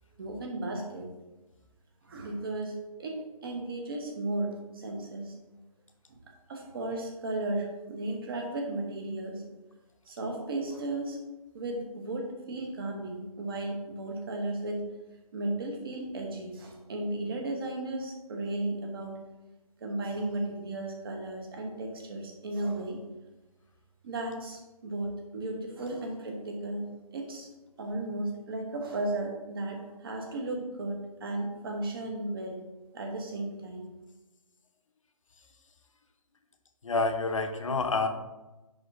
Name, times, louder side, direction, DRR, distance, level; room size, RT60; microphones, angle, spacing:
voice 1, 0.2-1.1 2.0-2.7 3.0-5.3 6.1-6.2 6.5-9.4 10.1-11.2 11.5-14.8 15.3-19.2 19.8-23.0 24.0-26.9 27.1-27.5 27.8-32.6 32.9-33.9, right 2 dB, 40° right, 2 dB, 1.2 m, -35 dB
voice 2, 36.8-38.1, left 3 dB, 55° left, 6 dB, 0.8 m, -28 dB
10.0 x 3.7 x 2.7 m, 1.1 s
figure-of-eight pair, 145°, 19 cm